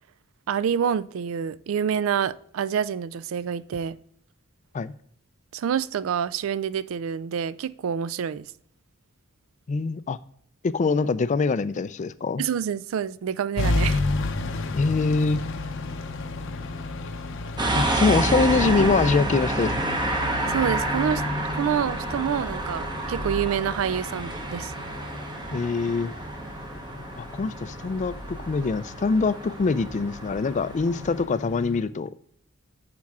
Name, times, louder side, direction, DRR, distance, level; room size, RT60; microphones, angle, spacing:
voice 1, 0.5-4.0 5.5-8.5 12.4-14.0 20.5-21.2 21.5-24.7, right 8 dB, 65° right, 0.3 m, -27 dB
voice 2, 9.7-10.2 10.6-12.4 14.7-15.4 17.7-20.0 25.5-26.1 27.2-32.1, left 4 dB, 35° left, 0.3 m, -24 dB
sound 1, 13.6-31.8, left 2 dB, 60° left, 0.7 m, -33 dB
sound 2, 17.6-31.2, right 2 dB, 20° right, 0.8 m, -29 dB
8.7 x 6.0 x 3.6 m
head